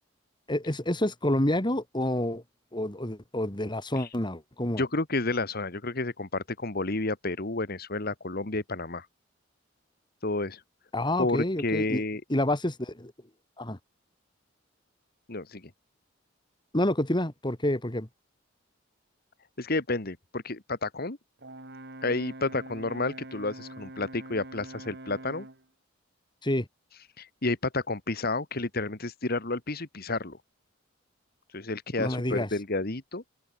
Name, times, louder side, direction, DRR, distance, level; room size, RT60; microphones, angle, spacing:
voice 1, 0.5-2.4 2.7-4.8 10.9-12.0 12.3-13.1 13.6-13.8 16.7-18.1 26.4-26.7 32.0-32.5, left 1 dB, 25° left, 2.6 m, -28 dB
voice 2, 4.8-9.1 10.2-10.6 11.2-12.2 15.3-15.7 19.6-21.2 22.0-25.5 27.2-30.4 31.5-33.2, left 2 dB, 50° left, 1.9 m, -31 dB
Brass instrument, 21.4-25.6, right 1 dB, 55° right, 3.5 m, -44 dB
head